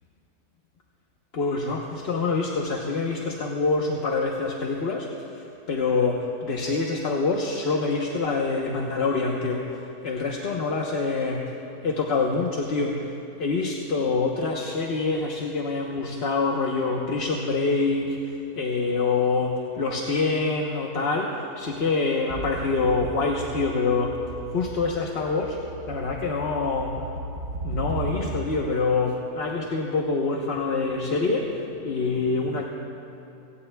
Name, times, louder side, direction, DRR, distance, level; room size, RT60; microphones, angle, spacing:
voice 1, 1.3-11.5 11.8-13.1 13.4-24.2 24.5-25.6 25.9-27.1 27.6-32.6, left 3 dB, 45° left, -1 dB, 1.1 m, -26 dB
sound 1, 22.3-28.7, right 3 dB, 50° right, 1.6 m, -36 dB
27.0 x 17.5 x 2.3 m, 2.9 s
omnidirectional pair, 1.6 m